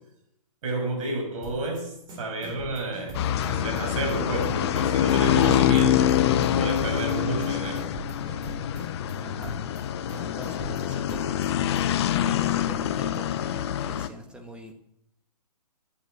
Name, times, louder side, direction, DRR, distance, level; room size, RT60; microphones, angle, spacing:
voice 1, 0.6-6.2 6.5-7.9, right 2 dB, 55° right, 2 dB, 6.7 m, -31 dB
sound 1, 1.4-1.8 2.1-3.8 4.1-4.5 4.8-6.5 6.8-7.1 7.4-9.1 9.4-9.8 10.1-11.8, right 2 dB, 20° right, 3.7 m, -41 dB
sound 2, 3.1-14.1, left 11 dB, 40° left, 0.9 m, -25 dB
voice 2, 9.2-9.6 10.1-11.4 11.8-14.7, right 1 dB, 5° right, 4 dB, 1.4 m, -43 dB
10.5 x 9.8 x 7.9 m, 0.77 s
hypercardioid pair, 145°, 20 cm